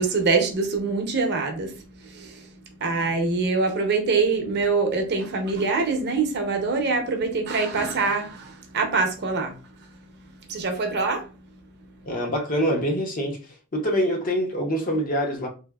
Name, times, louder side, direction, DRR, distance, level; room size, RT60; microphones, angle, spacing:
voice 1, 0.0-11.9, right 4 dB, 50° right, 0.6 m, -25 dB
voice 2, 12.0-13.4 13.7-15.5, equal, 40° left, 0.7 m, -25 dB
3.4 x 2.5 x 2.3 m
head